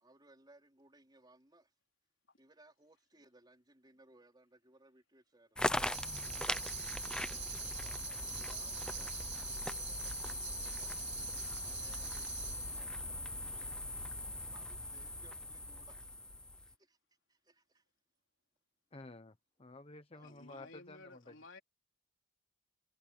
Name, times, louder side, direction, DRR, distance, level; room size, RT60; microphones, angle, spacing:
voice 1, 0.0-1.7 2.4-5.8 7.1-11.1 11.6-13.7 14.4-16.1 16.6-17.0 17.3-17.8 20.1-20.7, right 2 dB, 20° right, 4.1 m, -65 dB
sound 1, 5.6-16.7, left 1 dB, 5° left, 0.7 m, -40 dB
Tambourine, 5.8-12.8, right 12 dB, 60° right, 3.0 m, -46 dB
voice 2, 18.9-21.4, left 2 dB, 30° left, 0.9 m, -52 dB
voice 3, 20.2-21.6, left 2 dB, 75° left, 4.1 m, -55 dB
head